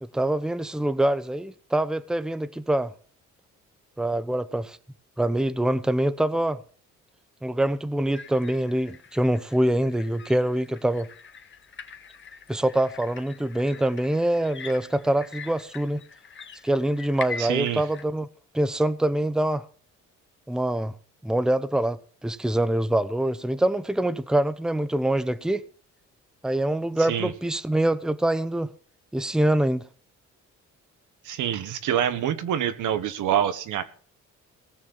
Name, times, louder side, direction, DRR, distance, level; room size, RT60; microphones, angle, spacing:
voice 1, 0.0-2.9 4.0-4.8 5.2-6.6 7.4-11.1 12.5-16.0 16.6-18.3 18.5-19.6 20.5-20.9 21.2-25.6 26.4-28.7 29.1-29.9, right 1 dB, ahead, 0.8 m, -25 dB
sound 1, 8.1-18.0, left 5 dB, 40° left, 1.7 m, -43 dB
voice 2, 17.4-17.8 27.1-27.3 31.2-33.8, right 10 dB, 85° right, 1.5 m, -26 dB
18.5 x 6.6 x 7.3 m
cardioid pair, 90°, 30 cm